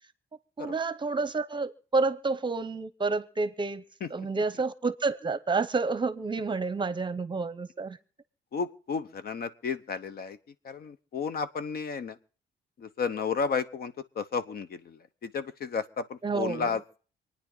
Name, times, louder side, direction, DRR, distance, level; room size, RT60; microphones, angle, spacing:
voice 1, 0.6-3.8 4.1-8.0 16.2-16.8, right 3 dB, 25° right, 0.8 m, -29 dB
voice 2, 8.5-10.4 10.6-12.1 13.0-14.7 15.2-16.8, left 5 dB, 55° left, 1.0 m, -32 dB
27.0 x 9.7 x 4.0 m
cardioid pair, 145°, 19 cm